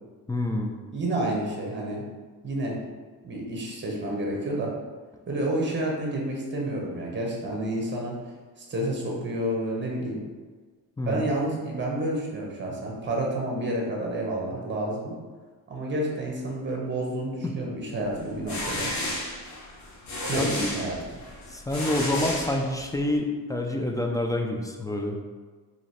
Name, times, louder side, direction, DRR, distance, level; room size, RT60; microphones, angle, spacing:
voice 1, 0.3-0.8 11.0-11.2 17.4-17.6 20.3-20.6 21.5-25.2, left 1 dB, 10° left, 1 dB, 0.3 m, -27 dB
voice 2, 0.9-2.0 2.4-2.8 3.2-4.7 5.3-8.2 8.6-10.2 11.1-15.1 15.7-18.9 20.2-21.0, right 1 dB, 30° right, -1 dB, 1.1 m, -29 dB
sound 1, 18.2-23.1, left 1 dB, 45° left, 1.2 m, -33 dB
3.0 x 2.9 x 4.2 m, 1.4 s
cardioid pair, 100°, 39 cm